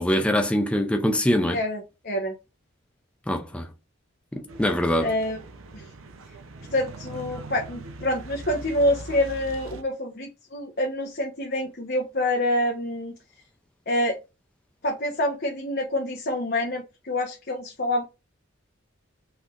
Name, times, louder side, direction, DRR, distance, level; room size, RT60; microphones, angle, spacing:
voice 1, 0.0-1.6 3.3-3.7 4.3-5.1, equal, 5° left, 0.5 m, -23 dB
voice 2, 1.5-2.3 5.0-5.4 5.7-5.9 6.7-13.1 13.9-14.2 14.8-18.0, left 1 dB, 50° left, 1.1 m, -27 dB
sound 1, 4.5-9.8, right 3 dB, 80° right, 0.8 m, -41 dB
5.9 x 3.5 x 2.5 m
head